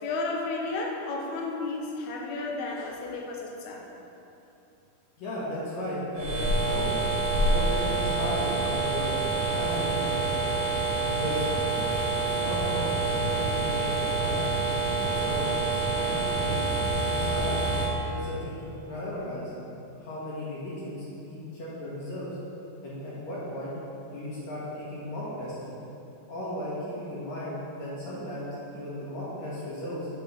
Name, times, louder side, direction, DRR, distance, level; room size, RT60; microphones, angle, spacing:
voice 1, 0.0-3.8, left 3 dB, 75° left, -1 dB, 1.7 m, -32 dB
voice 2, 5.2-6.9 7.4-10.4 11.1-11.5 12.3-14.4 15.2-16.6 16.9-17.7 18.0-19.5 20.0-22.3 22.8-23.8 24.0-25.6 26.3-30.1, left 1 dB, 60° left, -8 dB, 2.4 m, -35 dB
sound 1, 6.1-17.9, right 3 dB, 40° right, 1.8 m, -27 dB
6.0 x 5.0 x 5.3 m, 2.8 s
omnidirectional pair, 4.0 m